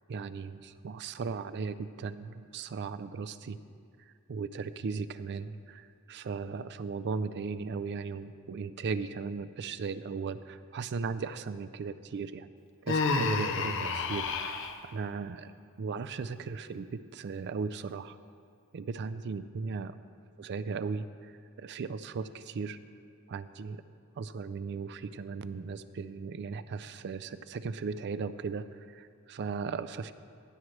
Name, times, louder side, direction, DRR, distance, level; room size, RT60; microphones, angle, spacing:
voice 1, 0.1-3.6 4.3-12.5 12.8-15.5 15.8-18.2 18.7-19.9 20.4-21.1 21.6-22.8 23.3-23.8 24.2-28.6 28.9-30.1, right 5 dB, 50° right, 13 dB, 0.4 m, -37 dB
Human voice, 12.9-14.7, left 4 dB, 60° left, 0.7 m, -29 dB
16.5 x 7.8 x 3.2 m, 2.3 s
head